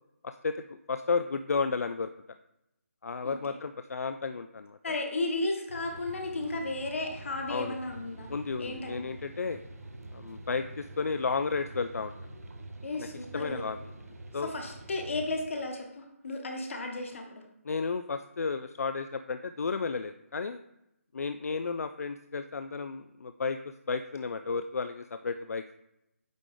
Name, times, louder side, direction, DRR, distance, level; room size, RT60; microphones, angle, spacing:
voice 1, 0.2-2.1 3.0-4.8 7.5-7.8 8.3-9.6 10.1-12.1 13.0-13.1 13.3-13.8 14.3-14.5 17.7-20.6 21.1-23.6 23.9-25.8, left 4 dB, 85° left, 9 dB, 0.4 m, -33 dB
voice 2, 3.2-3.5 4.8-8.3 8.6-9.0 12.8-13.6 14.4-17.4, left 2 dB, 60° left, 3 dB, 1.4 m, -34 dB
sound 1, 5.7-15.5, right 2 dB, 85° right, 1.1 m, -46 dB
8.9 x 3.3 x 3.7 m, 0.85 s
hypercardioid pair, 165°, 8 cm